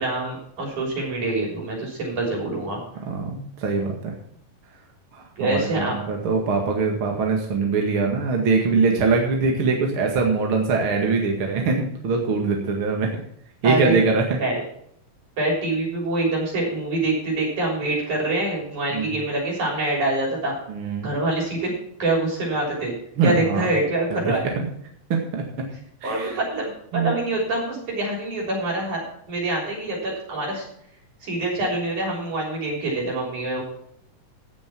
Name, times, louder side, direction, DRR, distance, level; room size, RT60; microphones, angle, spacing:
voice 1, 0.0-2.8 5.4-6.0 13.6-14.0 14.4-14.6 15.4-20.5 21.0-21.7 22.0-22.9 23.2-24.5 26.0-29.0 29.3-30.6 31.2-33.6, right 2 dB, 60° right, -3 dB, 7.8 m, -25 dB
voice 2, 3.0-4.1 5.1-13.1 13.6-14.4 18.9-19.2 20.7-21.1 23.2-23.7 24.1-24.7 25.1-25.4 26.0-26.4 26.9-27.1, right 4 dB, 45° right, 1 dB, 2.5 m, -23 dB
16.5 x 7.1 x 6.1 m, 0.69 s
omnidirectional pair, 3.8 m